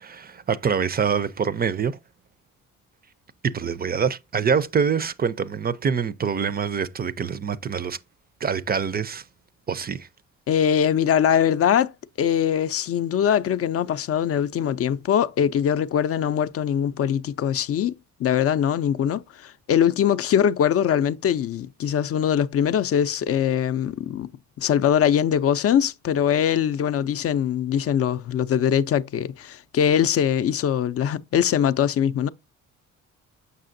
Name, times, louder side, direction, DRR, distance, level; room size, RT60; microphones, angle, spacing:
voice 1, 0.0-2.0 3.4-8.0 8.4-9.2 9.7-10.1, right 6 dB, 30° right, 0.4 m, -25 dB
voice 2, 10.5-11.9 12.2-24.3 24.6-32.3, left 9 dB, 50° left, 0.4 m, -22 dB
6.7 x 5.6 x 2.5 m
cardioid pair, 90°, 30 cm